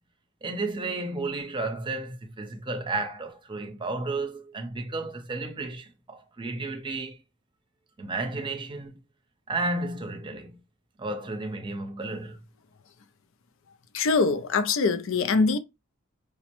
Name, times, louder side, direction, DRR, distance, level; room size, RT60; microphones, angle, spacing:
voice 1, 0.4-7.2 8.0-9.0 9.5-10.6 11.0-12.4, right 2 dB, 25° right, 0.6 m, -32 dB
voice 2, 13.9-15.6, left 4 dB, 65° left, 0.4 m, -23 dB
4.9 x 2.1 x 2.9 m
head